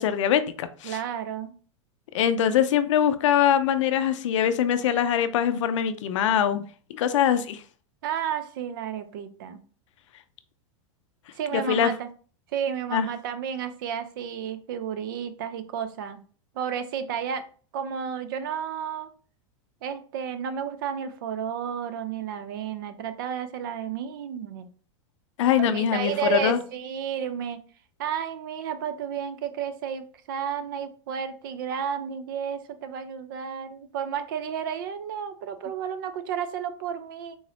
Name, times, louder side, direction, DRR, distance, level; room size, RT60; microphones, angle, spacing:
voice 1, 0.0-1.0 2.1-6.6 6.9-7.6 11.5-11.9 12.9-13.1 25.4-26.6, left 9 dB, 70° left, 11 dB, 0.5 m, -23 dB
voice 2, 0.8-1.5 8.0-9.6 11.4-12.1 12.5-16.2 16.6-17.4 17.7-19.1 19.8-24.7 25.6-27.6 28.0-37.4, right 8 dB, 40° right, 11 dB, 0.4 m, -32 dB
3.7 x 2.5 x 3.3 m, 0.41 s
supercardioid pair, 180°, 17 cm